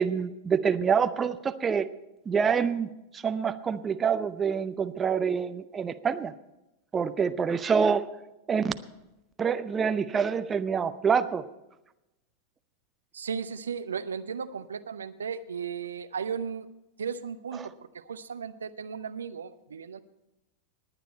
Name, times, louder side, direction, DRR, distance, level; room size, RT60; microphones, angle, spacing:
voice 1, 0.0-1.9 2.3-2.9 3.1-6.3 6.9-8.0 8.5-8.7 9.4-11.4, right 6 dB, 20° right, 11 dB, 0.7 m, -26 dB
voice 2, 13.1-16.7 17.0-20.0, right 6 dB, 70° right, 12 dB, 0.7 m, -35 dB
19.5 x 9.1 x 4.3 m, 0.97 s
figure-of-eight pair, 90°, 0 cm